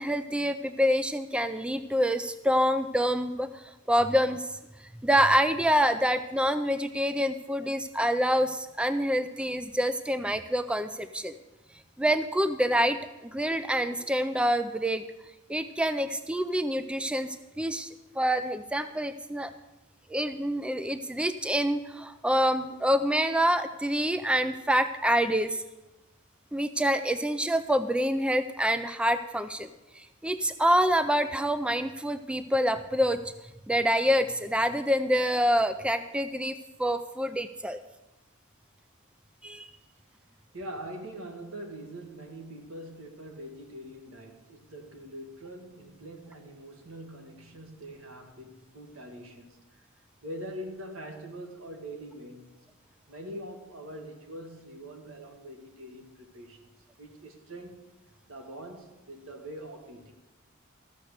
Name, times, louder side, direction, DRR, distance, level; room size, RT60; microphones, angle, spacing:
voice 1, 0.0-4.5 5.0-11.4 12.0-15.0 15.5-17.9 18.2-19.5 20.1-25.6 26.5-29.7 29.9-33.2 33.7-37.8 39.4-39.7, equal, 5° right, 0.4 m, -26 dB
voice 2, 40.5-49.8 50.2-52.5 53.1-56.7 57.0-57.9 58.3-60.1, right 1 dB, 80° right, 1.6 m, -43 dB
14.0 x 6.6 x 6.6 m
head